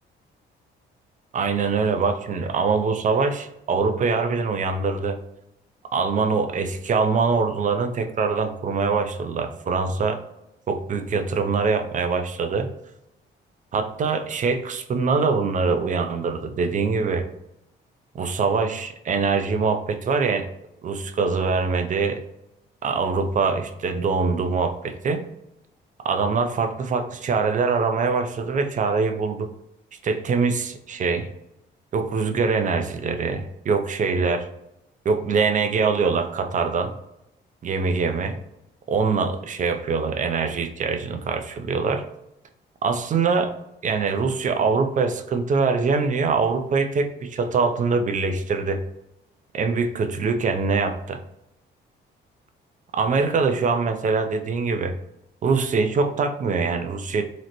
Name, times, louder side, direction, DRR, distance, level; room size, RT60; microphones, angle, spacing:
voice 1, 1.3-5.2 5.9-10.2 10.7-12.7 13.7-17.3 18.1-20.5 20.8-22.2 22.8-25.3 26.0-29.5 30.0-31.3 31.9-34.5 35.0-36.9 37.6-38.4 38.9-42.1 42.8-43.5 43.8-48.8 49.5-51.2 52.9-55.0 55.4-57.2, right 4 dB, 40° right, 7 dB, 0.4 m, -23 dB
3.8 x 2.1 x 2.9 m, 0.84 s
cardioid pair, 90°, 20 cm